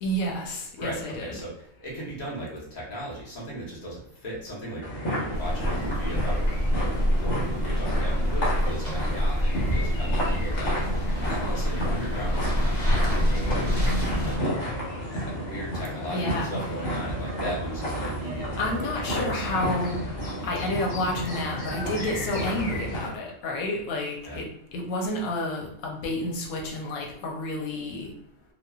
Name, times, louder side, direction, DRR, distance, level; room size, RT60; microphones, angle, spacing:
voice 1, 0.0-1.4 16.1-16.5 18.6-20.0 20.4-28.1, left 1 dB, 90° left, 0 dB, 1.0 m, -30 dB
voice 2, 0.8-4.9 5.1-14.8 15.1-19.4 24.2-24.4, equal, 35° left, -6 dB, 0.9 m, -37 dB
sound 1, 4.8-23.1, equal, 60° left, 1.3 m, -31 dB
sound 2, 5.3-14.4, equal, 15° left, 0.7 m, -26 dB
Yell / Crying sobbing, 5.9-6.2 6.5-6.7 7.4-9.2 10.2-10.3 11.3-11.8 12.1-13.4 14.6-14.9 16.1-17.4 17.7-19.2 20.9-21.0 22.2-22.6 22.9-23.1 24.2-24.3 24.7-25.0, right 1 dB, 75° right, 0.9 m, -47 dB
3.1 x 2.2 x 2.3 m, 0.69 s
omnidirectional pair, 1.4 m